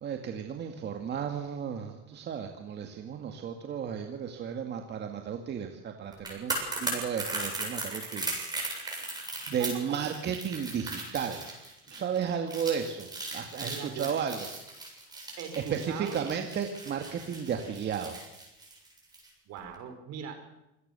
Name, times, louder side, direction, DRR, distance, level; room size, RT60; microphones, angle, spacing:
voice 1, 0.0-8.3 8.9-9.2 9.5-11.4 11.8-14.5 15.6-18.2, right 7 dB, 35° right, 4 dB, 2.1 m, -34 dB
sound 1, 6.1-19.3 19.6-19.7, right 2 dB, 15° right, 7.7 m, -38 dB
voice 2, 9.2-9.7 13.6-14.1 15.4-16.2 19.4-20.4, right 7 dB, 60° right, 7 dB, 4.9 m, -41 dB
26.0 x 17.5 x 6.9 m, 0.91 s
cardioid pair, 140°, 29 cm